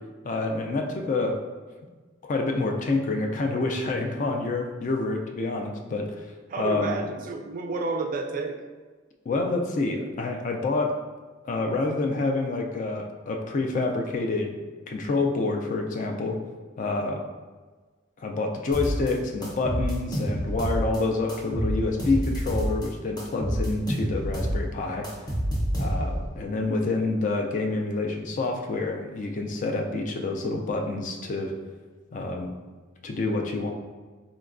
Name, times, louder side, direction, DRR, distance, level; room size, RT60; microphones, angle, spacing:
voice 1, 0.2-1.4 2.2-6.2 6.6-6.9 9.3-11.0 11.4-14.6 14.9-16.4 16.8-17.2 18.2-25.1 25.8-31.6 32.1-32.6 33.0-33.7, left 3 dB, 40° left, 2 dB, 0.3 m, -27 dB
voice 2, 6.5-8.6, right 3 dB, 45° right, 3 dB, 0.3 m, -30 dB
sound 1, 18.7-19.1 19.4-21.0 21.3-22.9 23.2-26.3, equal, 20° left, 0.7 m, -28 dB
3.8 x 2.2 x 2.4 m, 1.4 s
head